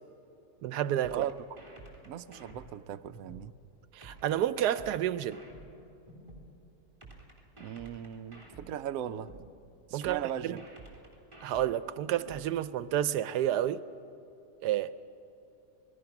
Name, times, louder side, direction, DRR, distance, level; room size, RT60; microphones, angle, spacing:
voice 1, 0.6-1.2 3.9-5.4 9.9-10.5 11.4-13.8 14.6-14.9, right 11 dB, 85° right, 1.2 m, -30 dB
sound 1, 1.0-3.5 4.0-6.5 7.0-9.5 10.0-12.5, right 2 dB, 15° right, 3.3 m, -51 dB
voice 2, 2.1-3.5 7.6-9.3 9.9-10.6, right 10 dB, 65° right, 1.0 m, -38 dB
27.0 x 20.0 x 6.0 m
omnidirectional pair, 1.7 m